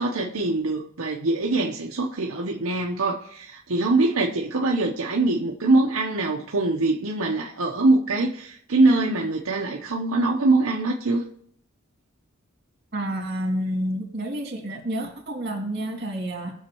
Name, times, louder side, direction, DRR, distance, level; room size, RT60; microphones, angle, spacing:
voice 1, 0.0-11.2, right 2 dB, 85° right, -1 dB, 0.9 m, -23 dB
voice 2, 12.9-16.5, right 1 dB, 50° right, 2 dB, 2.5 m, -29 dB
19.0 x 6.5 x 3.0 m, 0.66 s
head